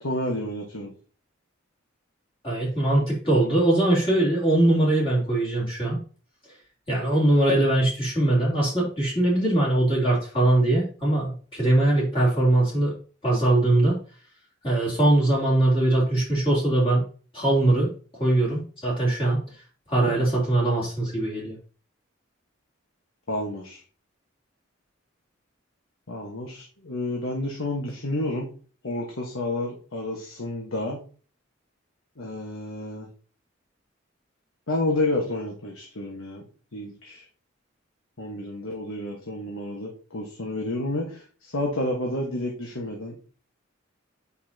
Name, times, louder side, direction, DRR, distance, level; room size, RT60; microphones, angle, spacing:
voice 1, 0.0-0.9 23.3-23.8 26.1-28.5 28.8-31.0 32.2-33.1 34.7-37.3 38.2-43.2, left 1 dB, 85° left, 0 dB, 1.4 m, -30 dB
voice 2, 2.4-6.0 6.9-12.9 13.2-14.0 14.6-17.0 17.3-19.4 19.9-21.5, right 1 dB, 25° left, -5 dB, 3.1 m, -21 dB
8.5 x 5.6 x 2.8 m, 0.39 s
head